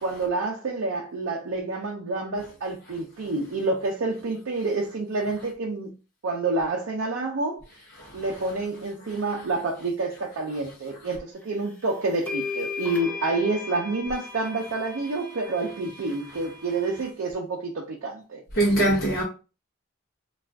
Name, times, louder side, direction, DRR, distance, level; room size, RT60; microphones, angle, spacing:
voice 1, 0.0-5.9 6.2-7.6 8.1-18.4, right 3 dB, 65° right, 0.5 m, -28 dB
voice 2, 7.9-8.5 9.4-9.5 16.3-16.4 18.5-19.2, right 1 dB, 45° left, 0.8 m, -25 dB
sound 1, 11.7-11.8 12.3-17.1, left 4 dB, 5° left, 0.4 m, -37 dB
2.4 x 2.3 x 3.3 m
head